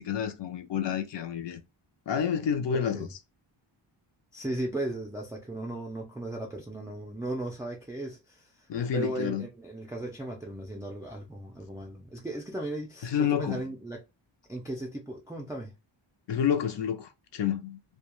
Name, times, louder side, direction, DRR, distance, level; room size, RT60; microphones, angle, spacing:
voice 1, 0.0-1.6 2.1-3.2 8.7-9.5 13.0-13.6 16.3-17.8, left 8 dB, 60° left, 0.5 m, -29 dB
voice 2, 2.7-3.1 4.3-8.5 8.9-14.0 14.5-15.7, right 1 dB, 5° right, 0.3 m, -36 dB
2.2 x 2.2 x 2.9 m
wide cardioid pair, 170°, 49 cm